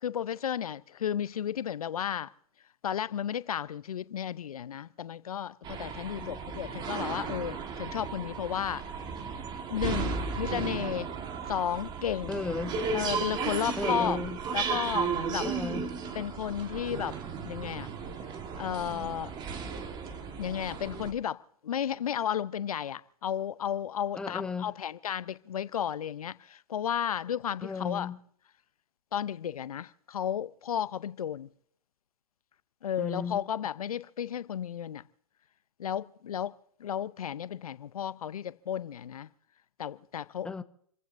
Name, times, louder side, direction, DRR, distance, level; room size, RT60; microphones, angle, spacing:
voice 1, 0.0-2.3 2.8-8.8 9.7-11.1 11.5-12.4 12.9-14.2 14.5-15.5 16.1-17.2 17.4-17.9 18.6-19.3 20.4-28.1 29.1-31.5 32.8-35.0 35.8-36.5 36.8-39.3 39.8-40.5, left 9 dB, 80° left, 0.6 m, -33 dB
sound 1, 5.6-21.1, right 5 dB, 25° right, 1.5 m, -35 dB
voice 2, 12.3-12.8 13.8-14.4 15.4-15.9 24.2-24.7 27.6-28.2 33.0-33.4 40.4-40.6, left 4 dB, 5° left, 0.6 m, -35 dB
29.0 x 16.0 x 2.6 m
hypercardioid pair, 120°, 19 cm